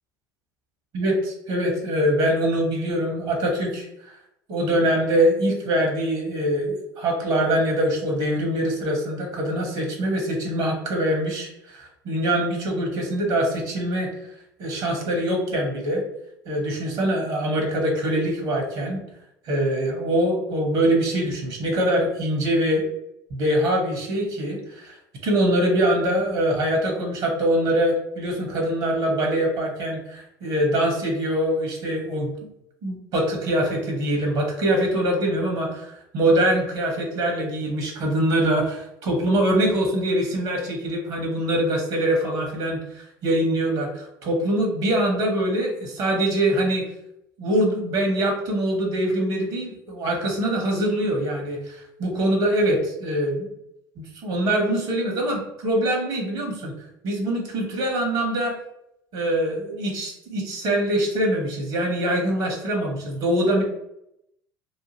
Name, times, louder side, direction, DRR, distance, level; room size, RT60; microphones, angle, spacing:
voice 1, 0.9-3.9 4.5-14.1 14.6-16.0 16.4-19.0 19.4-22.8 23.3-25.0 25.2-32.3 32.8-46.8 47.4-53.5 54.0-56.7 57.0-58.5 59.1-63.6, right 1 dB, 60° right, 1 dB, 1.2 m, -23 dB
3.5 x 2.5 x 2.8 m, 0.80 s
hypercardioid pair, 75°, 10 cm